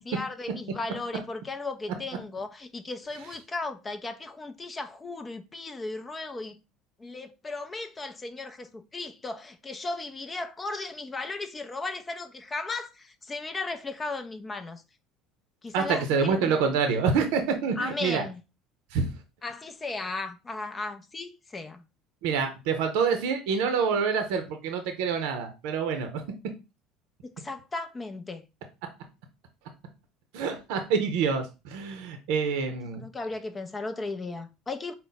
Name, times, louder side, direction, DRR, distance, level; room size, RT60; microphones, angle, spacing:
voice 1, 0.0-6.6 7.0-14.8 15.6-16.7 17.8-18.4 19.4-21.8 27.4-28.5 33.0-34.9, left 3 dB, 25° left, 0.4 m, -36 dB
voice 2, 15.7-18.2 18.9-19.1 22.2-26.2 30.3-33.1, right 5 dB, 75° right, 0.6 m, -27 dB
4.0 x 2.1 x 3.8 m
supercardioid pair, 90°, 0 cm